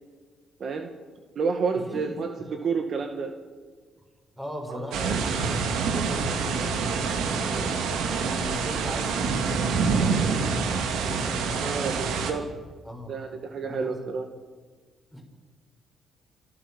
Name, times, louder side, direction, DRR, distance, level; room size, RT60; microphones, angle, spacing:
voice 1, 0.6-0.9 1.4-3.3 4.7-4.8 11.6-12.5 13.1-14.3, right 5 dB, 55° right, 5 dB, 2.0 m, -29 dB
voice 2, 1.7-2.2 4.4-7.7 8.2-12.4 12.8-13.1 13.7-14.1 15.1-15.2, equal, 10° right, 2 dB, 6.9 m, -38 dB
sound 1, 4.9-12.3, right 5 dB, 85° right, 2.6 m, -26 dB
27.5 x 13.5 x 7.5 m, 1.4 s
cardioid pair, 90°, 0 cm